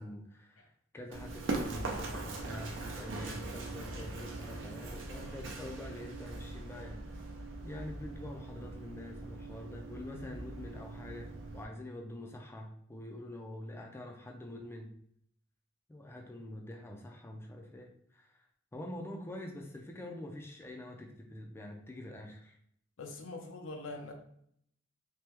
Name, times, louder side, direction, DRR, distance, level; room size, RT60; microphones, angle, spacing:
voice 1, 0.0-7.0 7.6-14.9 15.9-18.4 18.7-22.6, left 1 dB, 15° left, 1 dB, 0.4 m, -45 dB
Run, 1.1-11.6, right 2 dB, 75° right, 0.5 m, -41 dB
voice 2, 23.0-24.1, left 2 dB, 85° left, 3 dB, 0.6 m, -43 dB
3.3 x 2.1 x 2.9 m, 0.67 s
head